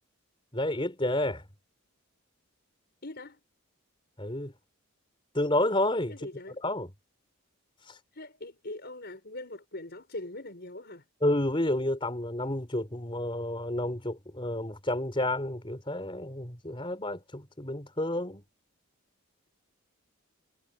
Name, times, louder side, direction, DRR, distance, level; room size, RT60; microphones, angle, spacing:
voice 1, 0.5-1.4 4.2-4.5 5.3-6.1 6.6-6.9 11.2-18.4, left 1 dB, 25° left, 4.1 m, -30 dB
voice 2, 3.0-3.4 6.1-6.6 8.1-11.0, left 2 dB, 50° left, 5.7 m, -42 dB
head